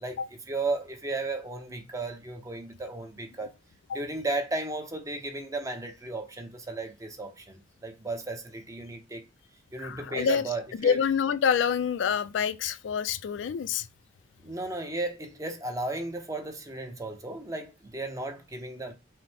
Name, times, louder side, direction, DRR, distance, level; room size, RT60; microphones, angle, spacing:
voice 1, 0.5-3.5 3.9-9.2 9.7-11.0 14.4-18.9, right 2 dB, 20° right, 0.7 m, -34 dB
voice 2, 9.8-10.4 10.8-13.9, left 7 dB, 75° left, 0.3 m, -27 dB
5.7 x 2.0 x 3.4 m
head